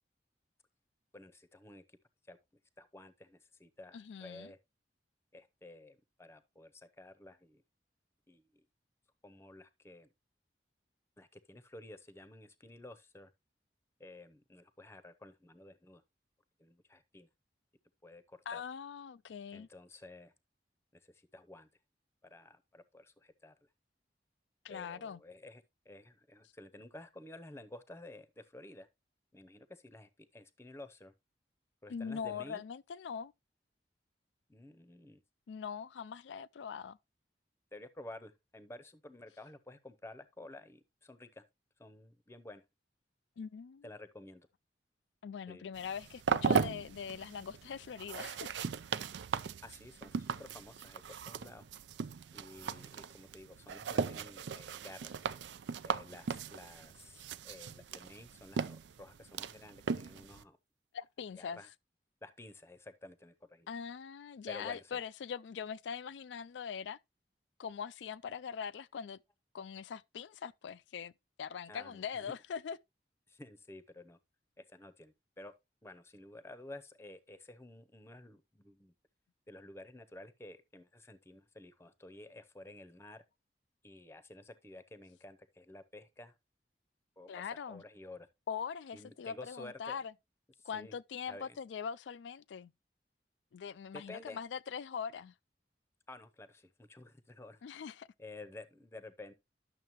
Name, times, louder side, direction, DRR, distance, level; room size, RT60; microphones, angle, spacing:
voice 1, 1.1-2.0 2.3-2.4 2.8-4.6 5.3-7.6 8.3-8.4 9.2-10.1 11.2-13.3 14.0-16.0 16.6-17.3 18.0-18.6 19.5-20.3 20.9-21.7 22.2-23.5 24.7-28.9 29.3-31.1 31.8-32.6 34.5-35.2 37.7-41.4 41.8-42.6 43.8-44.5 45.5-45.6 49.6-51.6 52.3-55.2 55.8-60.6 61.3-61.7 62.2-63.7 64.5-65.0 71.7-72.3 73.3-74.2 74.6-75.5 75.8-78.9 79.5-83.2 83.8-86.3 87.2-88.3 88.9-90.0 90.6-91.0 91.3-91.6 93.9-94.4 96.1-97.6 98.2-99.3, left 2 dB, 15° left, 0.7 m, -52 dB
voice 2, 3.9-4.5 18.5-19.7 24.6-25.2 31.9-33.3 35.5-37.0 43.4-43.9 45.2-48.6 60.9-61.6 63.7-67.0 67.6-69.2 69.5-71.1 71.4-72.8 87.3-87.8 88.5-90.1 90.6-92.7 93.5-95.3 97.6-98.1, left 7 dB, 90° left, 0.4 m, -42 dB
sound 1, 45.8-60.4, right 6 dB, 80° right, 0.4 m, -38 dB
11.0 x 6.6 x 3.0 m
head